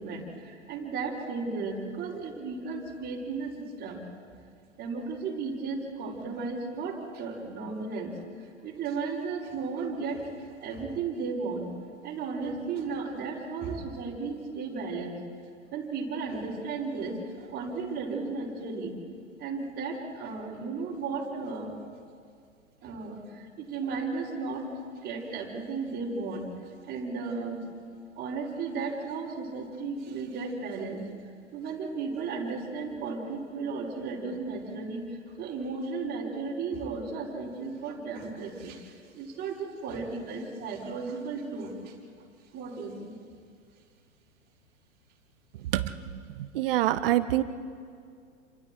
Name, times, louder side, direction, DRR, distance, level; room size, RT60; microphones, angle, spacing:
voice 1, 0.0-4.0 4.8-8.1 8.4-11.8 12.0-15.2 15.7-18.9 19.4-21.7 22.8-24.7 25.0-26.5 26.9-27.7 28.2-31.0 31.5-42.0 42.5-43.2, right 4 dB, 25° right, -3 dB, 5.2 m, -35 dB
voice 2, 46.5-47.4, right 14 dB, 45° right, 13 dB, 1.2 m, -25 dB
29.5 x 27.0 x 4.6 m, 2.2 s
figure-of-eight pair, 105°, 39 cm